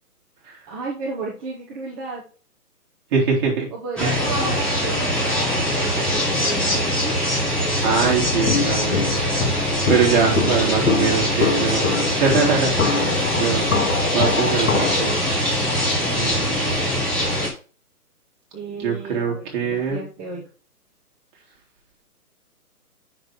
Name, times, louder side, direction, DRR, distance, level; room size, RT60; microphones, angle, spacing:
voice 1, 0.7-2.2 3.7-7.2 10.1-11.1 18.5-20.5, right 4 dB, 15° right, -4 dB, 1.0 m, -34 dB
voice 2, 3.1-3.7 4.0-4.1 7.8-9.2 9.9-15.3 16.0-16.8 18.8-20.0, right 6 dB, 30° right, -2 dB, 3.2 m, -23 dB
sound 1, 4.0-17.5, equal, ahead, 1.6 m, -22 dB
Walk footsteps, 8.5-15.2, left 5 dB, 55° left, 1.7 m, -25 dB
7.8 x 6.5 x 3.7 m, 0.36 s
hypercardioid pair, 155°, 46 cm